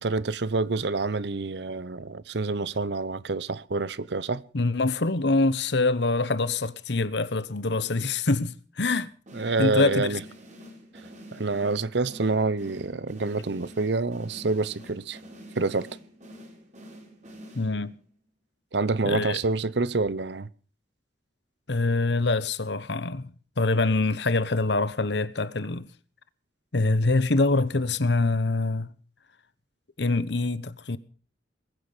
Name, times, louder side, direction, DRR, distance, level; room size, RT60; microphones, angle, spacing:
voice 1, 0.0-4.4 9.3-10.2 11.3-15.2 15.6-15.9 18.7-20.5, right 3 dB, 70° right, 0.8 m, -27 dB
voice 2, 4.5-9.1 9.6-10.2 17.5-17.9 19.0-19.4 21.7-25.9 26.7-28.9 30.0-31.0, left 3 dB, 70° left, 1.1 m, -25 dB
sound 1, 9.3-18.1, equal, 40° right, 5.0 m, -47 dB
21.5 x 9.6 x 6.7 m
head